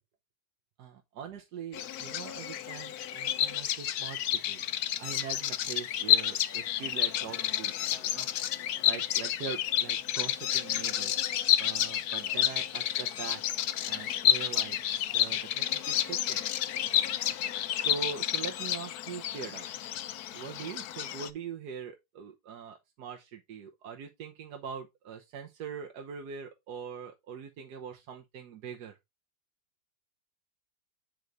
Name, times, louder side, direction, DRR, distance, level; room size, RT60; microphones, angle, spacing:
voice 1, 0.8-4.6 5.0-8.3 8.8-11.1 11.6-13.4 13.8-14.9 15.1-16.5 17.8-19.6 20.3-29.0, right 7 dB, 80° right, 1.4 m, -42 dB
Bird vocalization bird call bird song, 1.7-21.3, left 11 dB, 75° left, 1.2 m, -30 dB
8.0 x 4.7 x 3.9 m
omnidirectional pair, 1.7 m